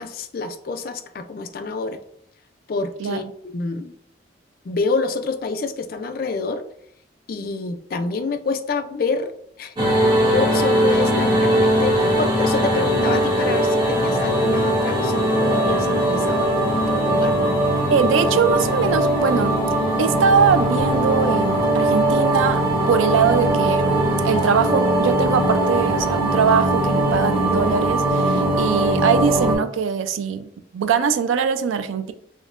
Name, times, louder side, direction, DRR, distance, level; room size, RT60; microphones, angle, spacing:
voice 1, 0.0-2.0 2.7-3.2 3.5-3.9 4.6-6.6 7.3-9.3 9.6-9.7 10.3-17.4, left 4 dB, 50° left, 8 dB, 0.3 m, -27 dB
sound 1, 9.8-29.5, right 1 dB, 25° right, 0.9 m, -20 dB
voice 2, 9.8-10.1 17.9-19.6 20.0-32.1, right 6 dB, 85° right, 10 dB, 0.3 m, -22 dB
5.1 x 2.1 x 2.4 m, 0.69 s
head